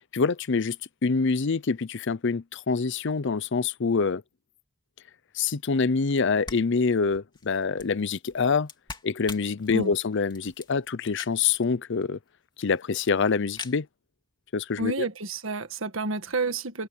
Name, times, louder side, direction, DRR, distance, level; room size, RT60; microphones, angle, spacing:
voice 1, 0.1-0.8 1.0-4.2 5.3-8.7 9.0-12.2 12.6-13.9 14.5-15.1, left 5 dB, 60° left, 0.6 m, -25 dB
sound 1, 6.1-6.2 6.4-11.6 12.0-12.1 12.3-12.4 12.5-13.0 13.4-13.8, left 4 dB, 20° left, 2.7 m, -43 dB
voice 2, 14.8-16.9, right 3 dB, 70° right, 1.7 m, -30 dB
head